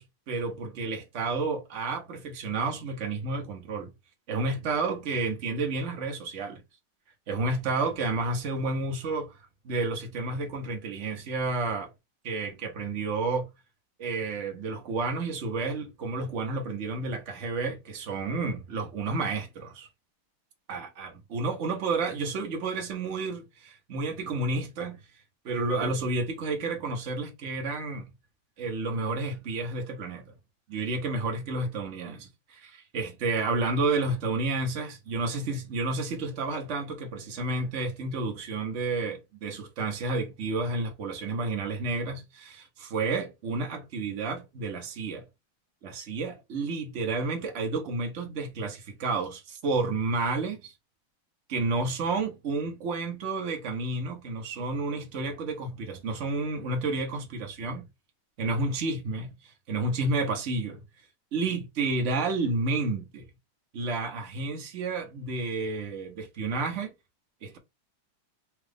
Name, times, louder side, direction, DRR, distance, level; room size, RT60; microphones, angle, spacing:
voice 1, 0.0-3.9 4.3-6.6 7.3-9.3 9.6-11.9 12.2-13.5 14.0-19.9 20.7-25.0 25.4-28.1 28.6-30.2 30.7-45.2 45.8-50.7 51.5-57.8 58.4-60.8 61.3-63.3 63.7-66.9 67.4-67.6, right 3 dB, 50° right, 0.9 m, -31 dB
4.5 x 2.4 x 3.4 m
omnidirectional pair, 2.4 m